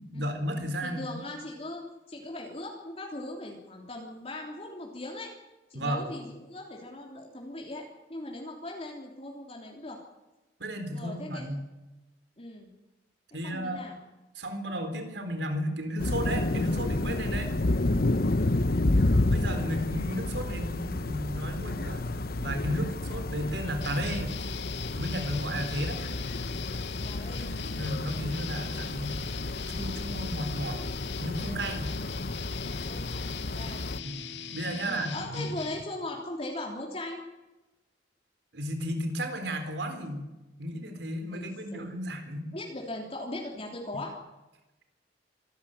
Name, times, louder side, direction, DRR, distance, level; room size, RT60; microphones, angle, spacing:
voice 1, 0.0-1.1 5.7-6.0 10.6-11.6 13.3-13.8 14.3-17.5 19.3-24.4 24.9-26.0 27.8-29.2 29.7-30.8 31.2-31.9 34.0-34.2 34.5-35.5 38.5-40.3 40.6-42.5, equal, 85° right, 6 dB, 4.1 m, -34 dB
voice 2, 0.8-5.3 5.7-10.0 10.9-11.5 12.4-12.7 13.3-14.0 27.0-27.5 28.6-28.9 31.9-32.3 32.9-33.8 34.8-37.2 41.3-42.0 42.5-44.1, left 1 dB, 35° left, 0 dB, 3.3 m, -40 dB
sound 1, 16.0-34.0, left 2 dB, 60° left, 1.0 m, -30 dB
sound 2, 23.8-35.8, left 7 dB, 90° left, 2.1 m, -41 dB
26.5 x 13.5 x 9.1 m, 1.0 s
head